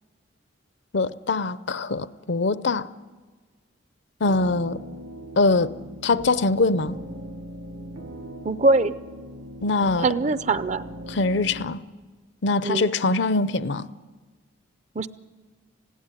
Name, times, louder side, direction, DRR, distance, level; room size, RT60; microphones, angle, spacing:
voice 1, 0.9-2.9 4.2-4.8 5.4-5.7 6.0-7.0 9.6-10.1 11.1-11.8 12.4-13.9, left 3 dB, 60° left, 0.6 m, -23 dB
sound 1, 4.3-11.7, equal, 80° right, 1.5 m, -40 dB
voice 2, 8.4-8.9 10.0-10.8 12.6-12.9 15.0-15.1, right 3 dB, 35° right, 0.6 m, -22 dB
19.5 x 16.0 x 9.8 m
head